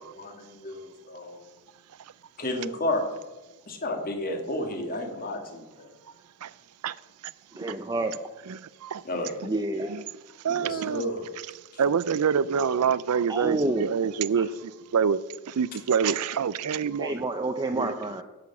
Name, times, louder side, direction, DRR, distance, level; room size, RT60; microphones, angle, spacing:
voice 1, 0.0-1.4 2.4-3.0 3.7-5.9 9.1-9.3 10.5-11.2, left 1 dB, 40° left, 1.8 m, -32 dB
voice 2, 7.5-8.2 9.4-10.0 13.3-13.9 14.4-14.5 17.0-18.2, right 2 dB, 20° right, 0.6 m, -29 dB
voice 3, 8.5-9.0 9.9-10.0 10.4-11.0 11.8-15.2 15.5-17.1 17.7-18.0, right 7 dB, 85° right, 0.5 m, -26 dB
11.0 x 6.8 x 7.0 m
head